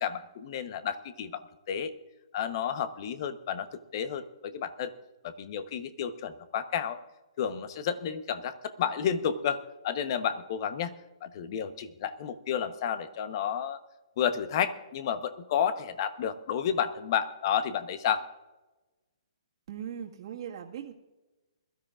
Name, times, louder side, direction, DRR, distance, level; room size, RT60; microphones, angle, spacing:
voice 1, 0.0-1.4 1.7-1.9 2.3-3.7 3.9-4.9 5.2-7.0 7.4-10.9 11.2-13.8 14.2-18.3, left 8 dB, 45° left, 11 dB, 1.0 m, -31 dB
voice 2, 19.7-20.9, right 9 dB, 50° right, -1 dB, 1.8 m, -39 dB
21.5 x 13.0 x 2.5 m, 1.1 s
hypercardioid pair, 150°, 3 cm